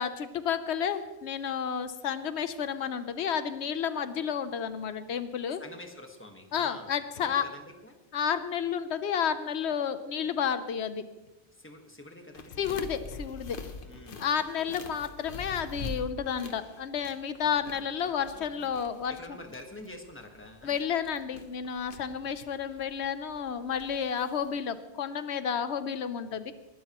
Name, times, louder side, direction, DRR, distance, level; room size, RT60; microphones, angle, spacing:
voice 1, 0.0-5.6 6.5-7.4 8.1-11.1 12.6-13.6 14.2-19.1 20.6-26.5, left 7 dB, 90° left, 11 dB, 1.0 m, -31 dB
voice 2, 5.6-8.0 11.5-12.7 13.8-14.7 17.4-18.7 19.1-20.8, left 1 dB, 10° left, 4 dB, 1.4 m, -48 dB
sound 1, 12.3-24.5, left 3 dB, 55° left, 1.2 m, -45 dB
20.5 x 12.0 x 3.0 m, 1.0 s
omnidirectional pair, 1.1 m